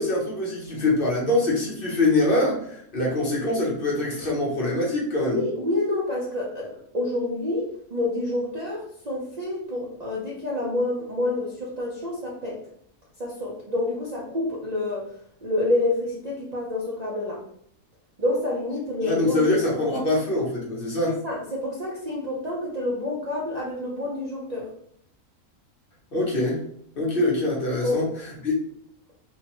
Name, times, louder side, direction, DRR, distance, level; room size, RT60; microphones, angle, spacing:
voice 1, 0.0-5.4 19.0-21.2 26.1-26.6 27.0-28.5, left 2 dB, 50° left, -3 dB, 0.9 m, -24 dB
voice 2, 5.2-12.6 13.2-15.1 15.4-17.4 18.2-19.9 21.0-24.7 27.8-28.0, left 2 dB, 45° right, -4 dB, 0.5 m, -28 dB
3.2 x 2.2 x 2.9 m, 0.68 s
omnidirectional pair, 1.4 m